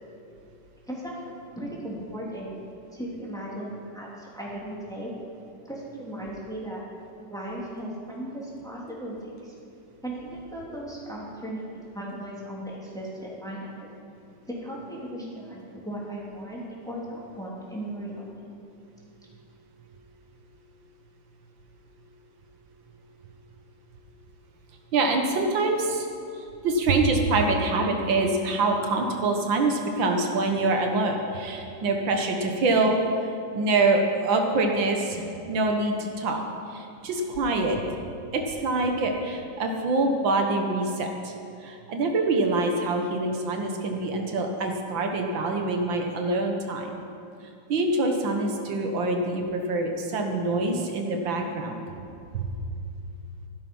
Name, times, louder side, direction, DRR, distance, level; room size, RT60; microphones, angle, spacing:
voice 1, 0.9-2.5 2.9-5.1 5.6-6.8 7.3-9.5 10.0-11.6 11.9-13.9 14.5-18.2, right 1 dB, ahead, -5 dB, 3.0 m, -37 dB
voice 2, 24.9-26.1 26.4-36.4 36.7-37.8 38.3-41.3 41.6-47.0 47.7-52.0 52.3-52.5, right 2 dB, 85° right, 3 dB, 2.0 m, -25 dB
15.0 x 12.0 x 5.5 m, 2.6 s
omnidirectional pair, 2.0 m